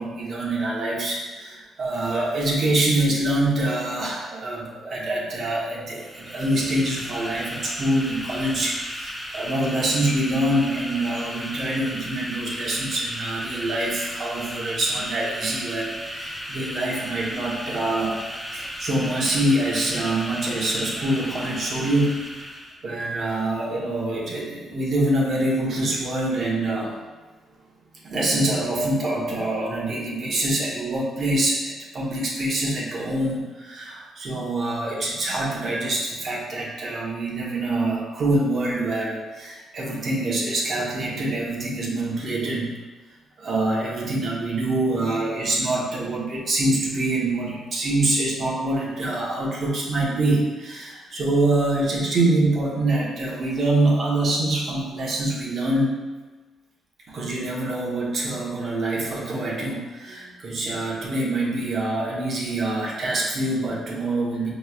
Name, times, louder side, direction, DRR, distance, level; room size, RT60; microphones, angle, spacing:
voice 1, 0.0-18.2 18.5-22.2 22.8-26.9 28.0-42.7 43.4-56.0 57.1-64.5, right 2 dB, 50° right, -4 dB, 1.1 m, -25 dB
sound 1, 5.9-22.8, equal, ahead, 0.5 m, -35 dB
5.3 x 3.1 x 2.4 m, 1.3 s
cardioid pair, 90°, 0 cm